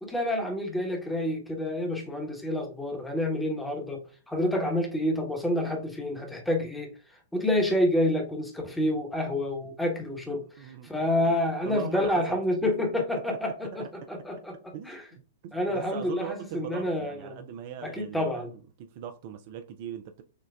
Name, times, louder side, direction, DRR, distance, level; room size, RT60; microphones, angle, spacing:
voice 1, 0.0-4.0 4.3-6.9 7.3-15.0 15.5-17.4 17.8-18.5, left 1 dB, 5° left, 0.9 m, -28 dB
voice 2, 10.6-10.9 11.2-11.3 11.6-12.4 12.6-13.9 14.7-15.0 15.4-18.5 18.8-20.2, right 9 dB, 45° right, 0.3 m, -40 dB
6.4 x 2.2 x 2.3 m
figure-of-eight pair, 105°, 0 cm